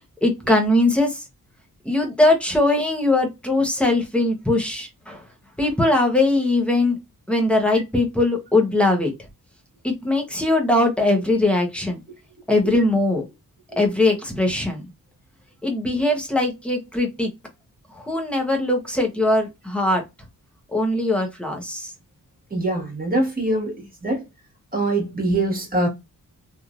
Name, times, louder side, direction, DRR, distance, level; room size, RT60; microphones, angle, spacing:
voice 1, 0.2-1.2 1.8-5.2 5.6-7.0 7.3-9.1 9.8-12.0 12.5-13.3 13.8-14.9 15.6-17.3 17.9-20.0 20.7-21.9, left 2 dB, 5° left, 0.9 m, -21 dB
voice 2, 22.5-24.2 24.7-25.9, right 2 dB, 25° right, 1.6 m, -23 dB
3.2 x 2.6 x 2.4 m
wide cardioid pair, 140°, 35 cm